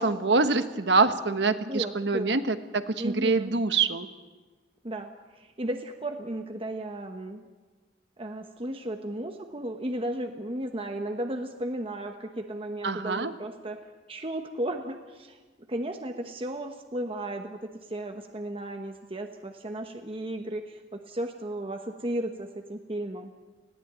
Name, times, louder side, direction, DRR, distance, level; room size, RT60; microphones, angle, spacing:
voice 1, 0.0-4.1 12.8-13.3, right 3 dB, 75° right, 10 dB, 1.2 m, -25 dB
voice 2, 1.6-2.4 3.0-3.5 4.8-7.4 8.2-13.8 14.1-15.4 15.7-23.3, right 1 dB, 30° right, 5 dB, 1.1 m, -34 dB
20.0 x 16.0 x 9.3 m, 1.3 s
head